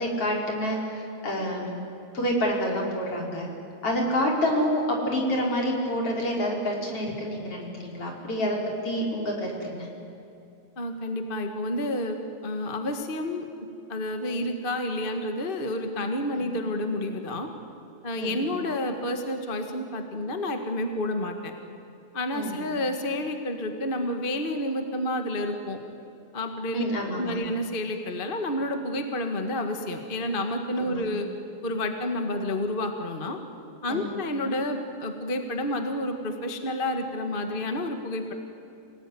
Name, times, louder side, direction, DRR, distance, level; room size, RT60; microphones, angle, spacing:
voice 1, 0.0-1.7 2.1-3.5 3.8-8.6 8.8-9.9 16.4-16.5 18.2-18.4 22.3-22.6 26.7-27.4 30.8-31.0 33.9-34.2, equal, 50° left, -1 dB, 5.4 m, -28 dB
voice 2, 10.8-13.5 13.9-17.5 18.0-21.5 22.1-25.8 26.3-26.8 27.2-31.3 31.6-33.4 33.8-38.3, left 1 dB, 25° left, 5 dB, 1.2 m, -30 dB
27.5 x 19.0 x 9.8 m, 2.6 s
omnidirectional pair, 3.5 m